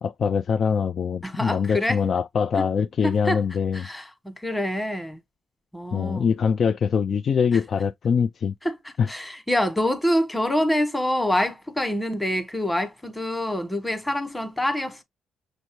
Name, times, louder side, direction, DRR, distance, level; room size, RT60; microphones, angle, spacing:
voice 1, 0.0-3.9 5.9-8.5 9.0-9.1, left 6 dB, 50° left, 0.3 m, -23 dB
voice 2, 1.2-2.0 2.6-2.7 3.0-3.4 3.7-5.2 5.7-6.3 7.5-7.6 8.6-15.0, left 1 dB, 10° left, 1.3 m, -26 dB
6.3 x 2.7 x 3.0 m
cardioid pair, 90°, 0 cm